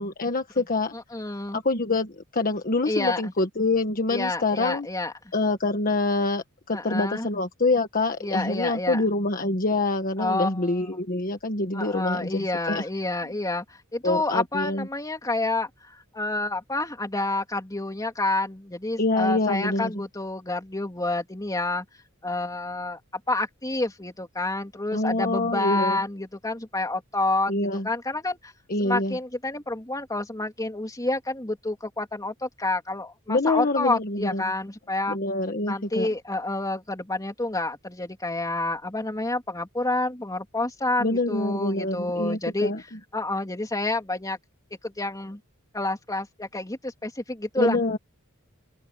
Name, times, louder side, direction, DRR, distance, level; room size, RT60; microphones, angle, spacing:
voice 1, 0.0-0.9 1.5-4.9 5.3-12.8 14.0-14.9 19.0-19.9 24.9-26.0 27.5-27.9 28.7-29.2 33.3-34.5 35.1-36.1 41.0-42.8 47.6-48.0, left 2 dB, 40° left, 1.5 m, -26 dB
voice 2, 0.9-1.6 2.9-3.3 4.1-5.1 6.7-7.3 8.2-9.0 10.2-11.0 11.7-13.6 13.9-21.9 22.2-23.0 23.3-27.5 27.8-28.5 28.8-35.2 35.7-42.7 43.1-44.4 44.8-45.4 45.7-48.0, left 2 dB, 15° left, 3.4 m, -29 dB
open air
head